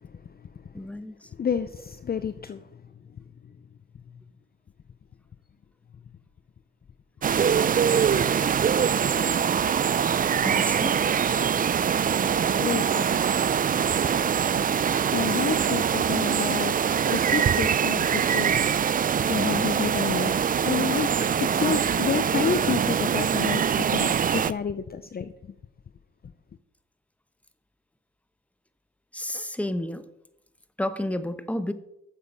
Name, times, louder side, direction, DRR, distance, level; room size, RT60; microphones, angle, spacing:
voice 1, 0.7-1.2 9.1-9.2 10.4-11.0 29.1-30.0 30.8-31.7, left 1 dB, 5° left, 0.9 m, -31 dB
voice 2, 1.4-2.6 7.5-8.1 8.6-8.7 12.6-13.1 14.8-16.7 17.1-18.6 19.3-21.1 21.4-25.3, left 7 dB, 30° left, 0.5 m, -30 dB
sound 1, 7.2-24.5, right 8 dB, 30° right, 0.4 m, -23 dB
8.2 x 7.3 x 5.9 m
cardioid pair, 70°, 31 cm